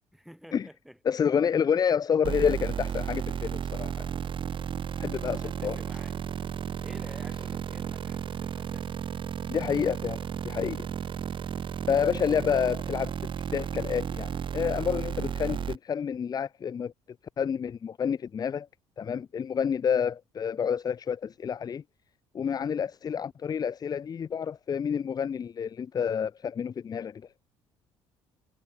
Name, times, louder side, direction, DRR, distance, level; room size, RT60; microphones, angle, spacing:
voice 1, 0.1-1.0 5.3-6.2 6.8-9.0, equal, ahead, 2.1 m, -50 dB
voice 2, 1.1-4.1 5.0-5.8 9.5-10.2 10.4-10.9 11.9-16.9 17.4-18.7 19.0-21.8 22.3-27.2, left 7 dB, 25° left, 0.4 m, -29 dB
sound 1, 2.2-15.8, right 8 dB, 35° right, 0.7 m, -33 dB
figure-of-eight pair, 50°, 15 cm